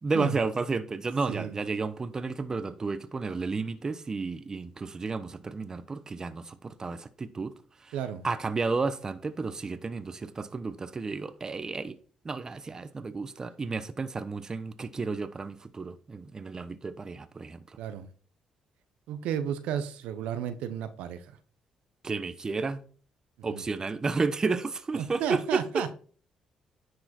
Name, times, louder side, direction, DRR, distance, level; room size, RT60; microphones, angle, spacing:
voice 1, 0.0-7.5 7.8-7.9 8.2-12.0 12.2-17.8 22.0-22.8 23.4-25.9, right 4 dB, 30° right, 0.9 m, -32 dB
voice 2, 7.9-8.2 17.8-18.1 19.1-21.3 23.4-23.6 25.0-25.9, right 9 dB, 85° right, 0.8 m, -33 dB
10.0 x 4.8 x 4.3 m
supercardioid pair, 70°, 2 cm